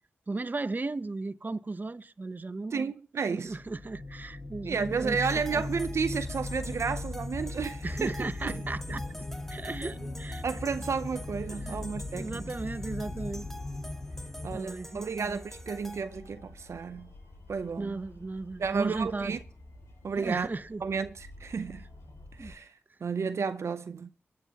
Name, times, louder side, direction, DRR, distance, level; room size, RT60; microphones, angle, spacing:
voice 1, 0.3-2.9 3.3-5.2 5.5-5.6 7.8-9.0 9.5-10.4 11.5-13.5 14.5-15.4 17.8-19.4 20.1-20.8 22.4-22.5, right 3 dB, 40° right, 0.8 m, -36 dB
voice 2, 2.7-3.5 4.6-8.1 8.4-8.6 10.4-12.5 14.4-17.1 17.5-18.0 18.6-19.4 20.0-20.5 20.8-21.9 22.4-22.7 23.0-24.1, right 5 dB, 70° right, 0.6 m, -32 dB
sound 1, 3.5-14.6, left 2 dB, 40° left, 1.7 m, -38 dB
sound 2, 5.3-16.0, equal, 5° left, 1.6 m, -48 dB
sound 3, 8.1-22.6, left 1 dB, 90° left, 6.0 m, -50 dB
23.0 x 10.5 x 2.9 m
cardioid pair, 50°, 5 cm